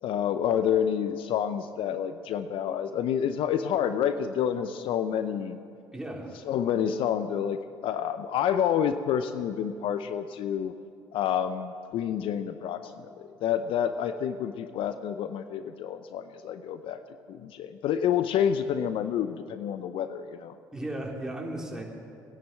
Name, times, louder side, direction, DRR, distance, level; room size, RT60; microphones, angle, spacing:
voice 1, 0.0-5.6 6.5-10.7 11.1-17.0 17.3-20.5, left 9 dB, 60° left, 11 dB, 0.7 m, -28 dB
voice 2, 5.9-6.3 20.7-21.8, right 1 dB, 5° right, -1 dB, 3.5 m, -35 dB
18.0 x 10.5 x 7.5 m, 2.4 s
hypercardioid pair, 60°, 10 cm